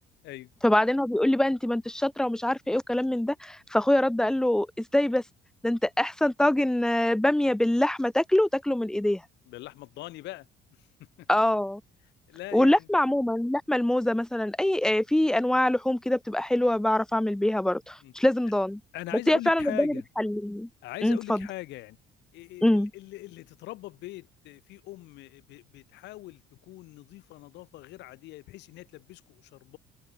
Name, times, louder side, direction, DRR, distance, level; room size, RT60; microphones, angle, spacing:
voice 1, 0.6-5.2 5.6-9.2 11.3-11.8 12.5-18.8 19.3-20.7 21.0-21.5 22.6-22.9, left 1 dB, 5° left, 0.7 m, -24 dB
voice 2, 9.5-10.9 11.2-11.3 12.3-12.9 18.0-18.1 18.9-20.0 20.8-22.0 22.3-29.8, left 17 dB, 80° left, 4.8 m, -42 dB
cardioid pair, 145°, 18 cm